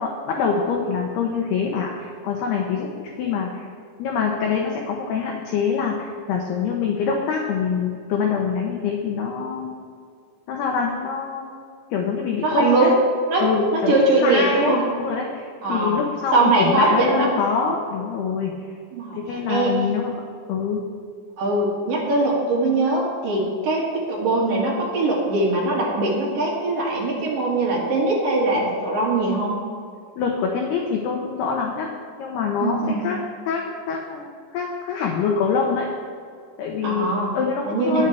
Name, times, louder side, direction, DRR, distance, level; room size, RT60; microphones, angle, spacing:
voice 1, 0.0-3.7 4.0-9.7 10.5-11.6 11.9-12.9 13.4-18.5 19.1-20.1 20.5-20.8 30.2-31.9 32.2-33.2 33.4-35.9 36.6-37.1 37.3-38.1, left 5 dB, 80° left, 0 dB, 2.4 m, -25 dB
voice 2, 12.4-12.9 13.3-13.4 13.7-14.8 15.6-16.0 16.3-17.3 18.9-19.2 19.5-19.7 21.4-29.6 32.6-33.0 36.8-37.3 37.6-38.1, right 2 dB, 50° right, -4 dB, 3.7 m, -21 dB
21.0 x 8.2 x 3.5 m, 2.2 s
omnidirectional pair, 5.9 m